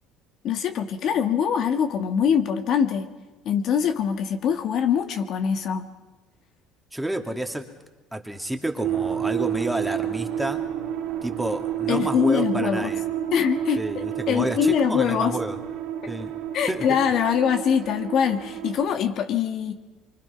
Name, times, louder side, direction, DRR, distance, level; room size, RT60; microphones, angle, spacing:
voice 1, 0.4-3.1 3.5-5.9 11.9-12.9 13.3-15.4 16.0-16.1 16.5-19.7, left 8 dB, 60° left, 6 dB, 1.9 m, -23 dB
voice 2, 6.9-7.7 8.1-10.6 11.2-13.0 13.8-15.6 16.1-16.3 16.7-16.9, right 1 dB, 5° right, 4 dB, 2.7 m, -30 dB
sound 1, 8.8-18.9, right 10 dB, 70° right, 2.4 m, -30 dB
25.0 x 24.5 x 5.9 m, 1.2 s
supercardioid pair, 85°, 0 cm